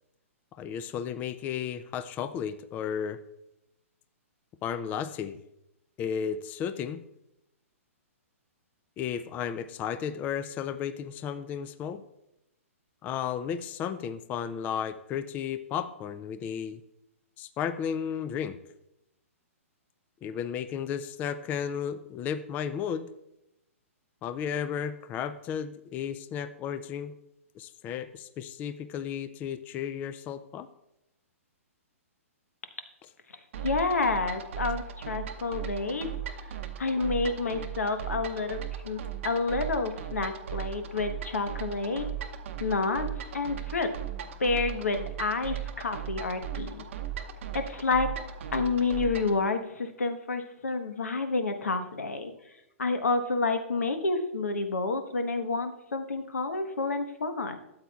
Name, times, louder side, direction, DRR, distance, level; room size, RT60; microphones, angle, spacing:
voice 1, 0.6-3.2 4.6-5.4 6.0-7.0 9.0-12.0 13.0-16.8 17.4-18.6 20.2-23.1 24.2-27.1 27.6-30.7, left 8 dB, 20° left, 12 dB, 0.3 m, -33 dB
sound 1, 33.5-49.4, right 10 dB, 60° right, 0.8 m, -37 dB
voice 2, 33.6-36.1 36.8-42.0 42.6-43.1 43.3-43.9 44.4-46.8 47.5-48.1 48.5-52.3 52.8-57.6, left 3 dB, 85° left, 7 dB, 1.1 m, -29 dB
12.5 x 7.8 x 2.3 m, 0.86 s
hypercardioid pair, 130°, 8 cm